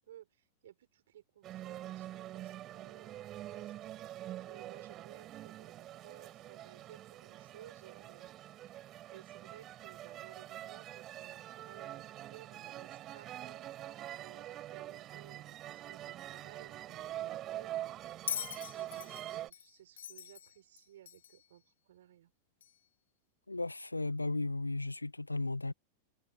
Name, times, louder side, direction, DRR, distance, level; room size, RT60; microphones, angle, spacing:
voice 1, 0.0-4.2 4.5-8.4 8.7-8.9 9.1-13.7 14.2-18.3 18.7-22.3, right 12 dB, 60° right, 5.7 m, -58 dB
sound 1, 1.4-19.5, right 13 dB, 35° right, 5.8 m, -45 dB
Bell, 18.3-21.5 22.6-22.7, left 9 dB, 65° left, 0.4 m, -42 dB
voice 2, 23.5-25.7, left 2 dB, 85° left, 1.6 m, -35 dB
figure-of-eight pair, 90°, 0 cm